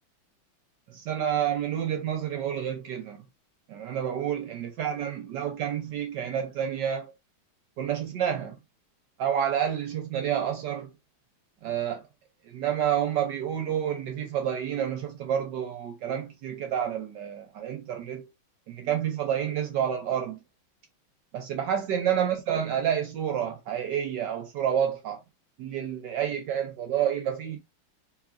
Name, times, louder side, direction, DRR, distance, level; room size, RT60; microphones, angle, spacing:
voice 1, 0.9-3.2 3.7-7.1 7.8-8.6 9.2-10.9 11.6-12.0 12.5-18.3 18.7-20.4 21.3-25.2 25.6-27.6, right 9 dB, 70° right, 1.1 m, -29 dB
4.0 x 3.0 x 2.4 m
omnidirectional pair, 2.4 m